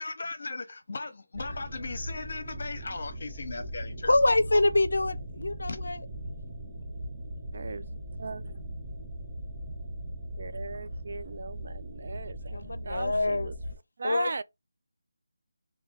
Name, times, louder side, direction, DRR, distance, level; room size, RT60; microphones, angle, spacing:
voice 1, 0.0-4.6 5.7-5.8, left 3 dB, 45° left, 0.8 m, -38 dB
sound 1, 1.3-13.8, equal, 20° right, 0.7 m, -39 dB
voice 2, 4.1-6.0 12.5-13.5 14.0-14.4, left 2 dB, 80° left, 0.5 m, -25 dB
voice 3, 7.5-8.6 10.4-13.6 14.0-14.4, right 3 dB, 45° right, 0.3 m, -38 dB
3.3 x 2.2 x 3.7 m
figure-of-eight pair, 175°, 0 cm